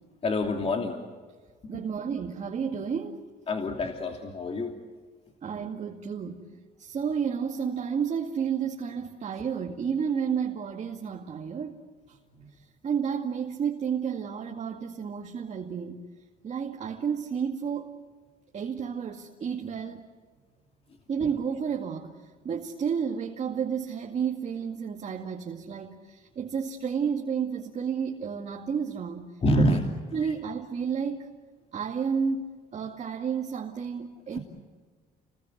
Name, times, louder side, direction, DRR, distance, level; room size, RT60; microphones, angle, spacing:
voice 1, 0.2-1.0 1.6-1.8 3.5-4.7 12.4-12.5 29.4-29.8 30.2-30.3 34.3-34.4, left 1 dB, 35° left, 2.8 m, -27 dB
voice 2, 1.7-3.2 5.4-11.8 12.1-12.2 12.5-16.0 16.4-18.0 18.5-20.1 21.1-29.3 29.6-29.8 30.1-31.3 31.7-32.4 32.7-34.4, right 7 dB, 40° right, 2.2 m, -31 dB
29.5 x 21.5 x 8.0 m
cardioid pair, 110°, 17 cm